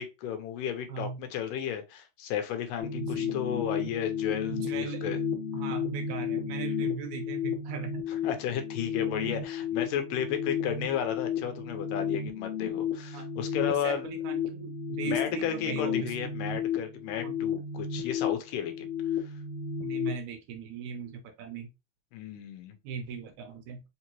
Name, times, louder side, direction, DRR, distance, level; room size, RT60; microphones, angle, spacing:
voice 1, 0.0-5.2 8.2-14.1 15.0-18.9 19.2-19.3 22.1-22.7, left 9 dB, 85° left, 2.3 m, -33 dB
sound 1, 2.8-20.1, left 7 dB, 45° left, 1.5 m, -33 dB
voice 2, 2.9-3.4 4.5-5.2 5.5-8.0 13.1-13.3 13.6-16.3 17.2-17.4 19.8-21.7 22.8-23.8, right 6 dB, 75° right, 1.9 m, -39 dB
5.2 x 2.9 x 2.9 m
omnidirectional pair, 3.8 m